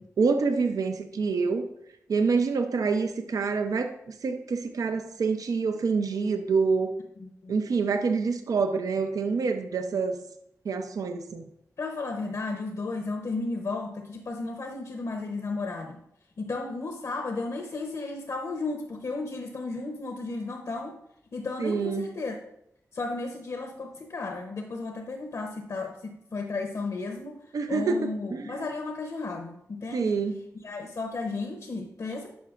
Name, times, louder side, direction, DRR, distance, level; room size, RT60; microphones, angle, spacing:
voice 1, 0.2-1.7 2.1-3.9 4.2-6.9 7.5-10.2 10.7-11.4 21.6-22.1 27.5-28.7 29.9-30.5, right 4 dB, 80° right, 7 dB, 0.5 m, -26 dB
voice 2, 7.2-7.6 11.8-16.0 16.4-21.0 21.3-22.5 22.9-27.4 27.7-30.1 30.6-32.3, left 3 dB, 65° left, 3 dB, 0.7 m, -34 dB
9.5 x 5.7 x 2.4 m, 0.75 s
wide cardioid pair, 90°, 6 cm